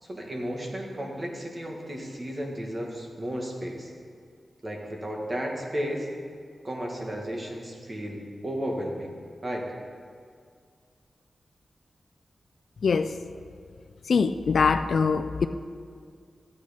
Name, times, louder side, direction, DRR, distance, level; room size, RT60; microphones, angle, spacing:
voice 1, 0.0-3.9 4.6-6.1 6.6-9.1 9.4-9.7, equal, 35° right, 0 dB, 1.9 m, -33 dB
voice 2, 12.8-13.2 14.1-15.5, left 5 dB, 70° left, 9 dB, 0.4 m, -23 dB
14.0 x 8.5 x 5.2 m, 2.1 s
wide cardioid pair, 105°, 0 cm